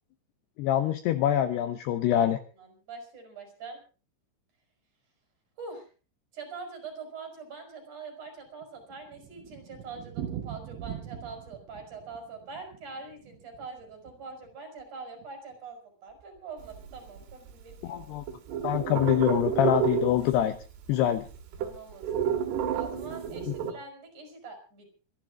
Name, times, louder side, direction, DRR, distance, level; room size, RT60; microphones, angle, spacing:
voice 1, 0.6-2.4 17.8-18.2 18.6-20.6 20.9-21.3 23.5-23.6, left 11 dB, 75° left, 10 dB, 2.5 m, -25 dB
voice 2, 2.6-3.8 5.6-5.9 6.3-18.2 21.6-24.9, right 4 dB, 40° right, 5 dB, 5.8 m, -44 dB
Thunder, 8.3-14.5 14.8-14.9 15.2-15.3 15.5-15.6 16.2-16.5, right 10 dB, 75° right, 3.9 m, -42 dB
sound 1, 16.6-17.7 18.0-20.6 20.9-21.0 21.2-23.7, right 8 dB, 60° right, 4.0 m, -30 dB
25.5 x 12.0 x 3.7 m, 0.35 s
omnidirectional pair, 5.6 m